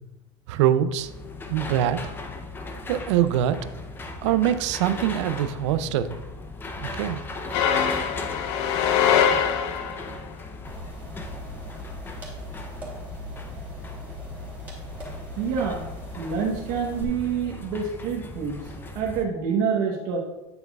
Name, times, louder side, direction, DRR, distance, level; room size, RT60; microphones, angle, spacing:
voice 1, 0.5-1.1 1.5-2.0 2.9-3.7 4.2-6.2 6.8-7.2, right 11 dB, 85° right, 13 dB, 0.5 m, -23 dB
sound 1, 1.0-19.3, left 2 dB, 15° left, 0.6 m, -38 dB
sound 2, 7.5-10.1, left 8 dB, 70° left, 0.7 m, -23 dB
sound 3, 10.6-17.0, equal, 10° right, 2.7 m, -40 dB
voice 2, 15.4-15.8 16.2-20.2, right 6 dB, 60° right, -1 dB, 1.1 m, -27 dB
9.0 x 8.0 x 2.4 m, 1.0 s
supercardioid pair, 145°, 15 cm